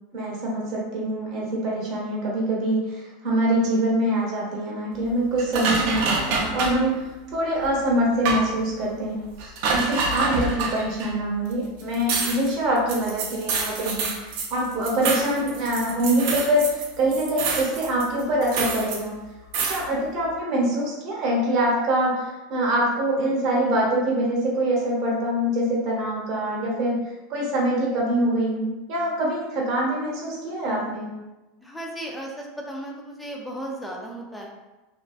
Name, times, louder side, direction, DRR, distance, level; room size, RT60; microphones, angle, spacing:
voice 1, 0.1-9.2 9.7-19.1 19.6-27.0 27.3-31.1, right 1 dB, 45° right, -3 dB, 0.8 m, -24 dB
sound 1, 5.4-6.8 7.6-7.7 8.2-8.5 9.4-11.1 11.5-11.6 11.8-16.9 17.1-19.0 19.5-19.8, right 4 dB, 60° right, 0.4 m, -27 dB
voice 2, 31.6-34.5, right 1 dB, 5° left, -1 dB, 0.4 m, -35 dB
2.5 x 2.1 x 2.3 m, 1.1 s
supercardioid pair, 150°, 0 cm